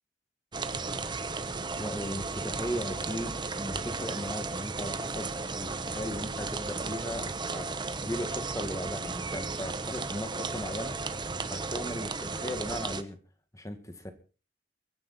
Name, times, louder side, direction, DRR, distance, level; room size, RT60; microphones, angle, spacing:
sound 1, 0.5-13.0, right 3 dB, 25° right, 1.0 m, -35 dB
voice 1, 1.8-7.7 8.0-11.0 11.5-13.2 13.5-14.1, equal, 20° left, 8 dB, 1.9 m, -37 dB
23.0 x 10.5 x 4.3 m, 0.37 s
head